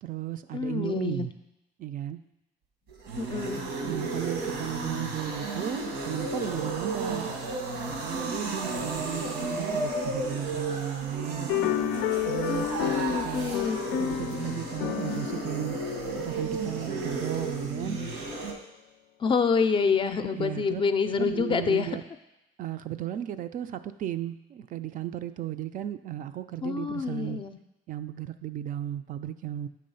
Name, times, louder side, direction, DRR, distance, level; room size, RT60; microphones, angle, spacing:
voice 1, 0.0-1.3 1.8-2.2 3.8-7.3 7.9-11.5 12.2-13.6 13.9-15.8 16.2-18.0 20.3-20.8 21.2-22.0 22.6-27.4 27.9-29.7, right 12 dB, 50° right, 10 dB, 0.4 m, -35 dB
voice 2, 0.5-1.3 3.2-3.6 12.5-13.8 19.2-22.0 26.6-27.6, left 5 dB, 30° left, 9 dB, 0.4 m, -27 dB
sound 1, 2.9-18.5, right 3 dB, 90° right, 1.2 m, -33 dB
sound 2, 11.5-17.0, left 11 dB, 90° left, 0.4 m, -31 dB
7.7 x 3.1 x 5.5 m, 0.92 s
cardioid pair, 110°, 17 cm